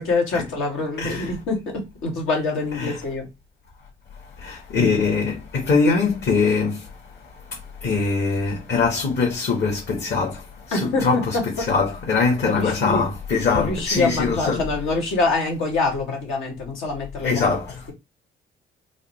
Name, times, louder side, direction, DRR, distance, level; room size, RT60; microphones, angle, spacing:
voice 1, 0.0-3.3 10.7-11.4 12.4-13.1 13.5-17.4, left 3 dB, 90° left, 1.7 m, -25 dB
voice 2, 1.0-1.3 2.8-3.0 4.4-6.8 7.8-10.4 10.7-11.4 11.7-14.6 17.2-17.6, left 4 dB, 60° left, 1.5 m, -22 dB
4.1 x 2.1 x 4.1 m
cardioid pair, 90°, 20 cm